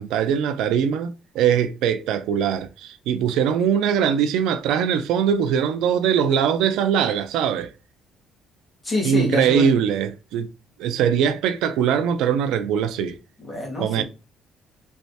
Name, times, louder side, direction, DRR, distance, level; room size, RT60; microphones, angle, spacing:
voice 1, 0.0-7.7 9.0-10.5 10.8-13.2 13.8-14.0, right 8 dB, 90° right, 0.3 m, -21 dB
voice 2, 8.8-9.7 13.5-14.0, left 1 dB, 15° left, 1.6 m, -26 dB
3.2 x 3.1 x 2.7 m
cardioid pair, 145°, 0 cm